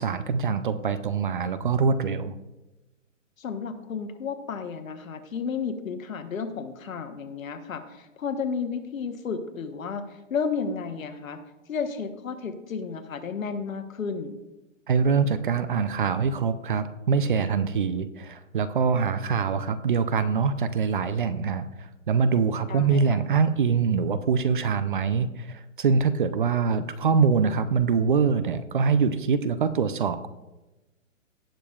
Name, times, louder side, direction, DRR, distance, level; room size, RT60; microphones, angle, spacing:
voice 1, 0.0-2.3 14.9-30.3, right 5 dB, 40° right, 13 dB, 0.5 m, -24 dB
voice 2, 3.4-14.4 22.7-23.2, left 5 dB, 90° left, 8 dB, 1.2 m, -32 dB
17.5 x 6.7 x 2.4 m, 1.1 s
hypercardioid pair, 165°, 39 cm